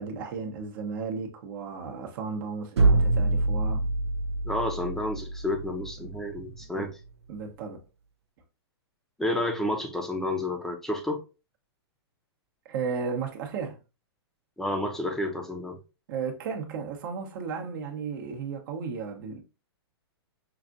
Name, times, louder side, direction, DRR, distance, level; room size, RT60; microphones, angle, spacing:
voice 1, 0.0-3.8 6.2-6.3 6.7-6.9 7.3-7.8 12.6-13.8 16.1-19.4, right 5 dB, 50° right, 0.9 m, -34 dB
sound 1, 2.8-6.6, right 2 dB, 85° right, 0.6 m, -26 dB
voice 2, 4.4-6.9 9.2-11.2 14.6-15.8, left 1 dB, 5° left, 0.7 m, -30 dB
5.7 x 2.5 x 2.4 m
hypercardioid pair, 130°, 14 cm